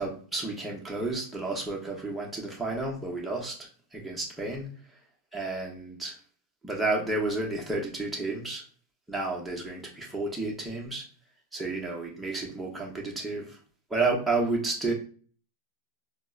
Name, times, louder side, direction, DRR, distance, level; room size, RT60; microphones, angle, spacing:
voice 1, 0.0-3.5 3.9-4.7 5.3-6.1 6.6-8.6 9.1-11.0 11.5-13.6 13.9-14.9, right 3 dB, 5° right, -2 dB, 0.8 m, -31 dB
4.2 x 2.1 x 2.3 m, 0.41 s
supercardioid pair, 130°, 0 cm